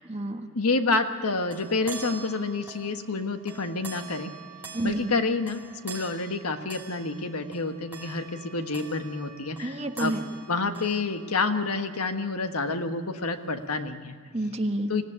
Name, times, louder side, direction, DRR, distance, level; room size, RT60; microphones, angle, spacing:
voice 1, 0.0-0.5 4.7-5.1 9.6-10.3 14.3-14.9, right 1 dB, 30° right, 5 dB, 1.5 m, -29 dB
voice 2, 0.5-4.3 4.8-10.1 10.5-14.2 14.9-15.0, left 3 dB, 85° left, 7 dB, 1.4 m, -28 dB
sound 1, 1.0-11.7, right 5 dB, 10° right, 5.1 m, -45 dB
25.5 x 17.5 x 10.0 m, 2.1 s
head